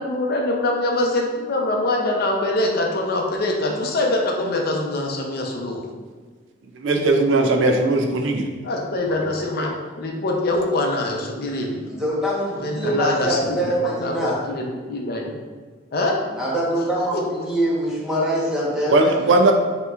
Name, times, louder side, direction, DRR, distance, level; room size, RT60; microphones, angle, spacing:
voice 1, 0.0-5.9 8.6-11.8 12.6-15.3 15.9-16.2 17.1-17.2, left 2 dB, 55° left, 0 dB, 0.6 m, -24 dB
voice 2, 6.7-8.5 9.6-9.7 18.9-19.5, right 2 dB, 90° right, 4 dB, 0.5 m, -18 dB
voice 3, 11.9-14.4 16.4-19.1, right 1 dB, 5° right, -7 dB, 1.0 m, -24 dB
5.5 x 2.9 x 2.4 m, 1.5 s
head